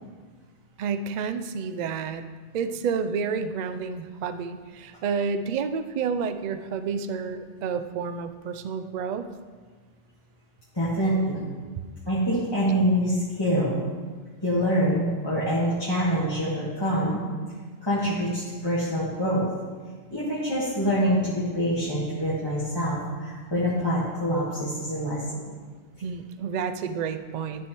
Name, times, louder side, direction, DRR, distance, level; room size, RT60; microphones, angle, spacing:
voice 1, 0.8-2.2 2.5-9.3 26.0-27.7, right 6 dB, 60° right, 9 dB, 0.4 m, -30 dB
voice 2, 10.7-11.4 12.1-13.8 14.4-17.2 17.8-19.5 20.1-25.4, equal, 20° left, -10 dB, 1.5 m, -25 dB
13.0 x 6.3 x 3.1 m, 1.5 s
omnidirectional pair, 1.2 m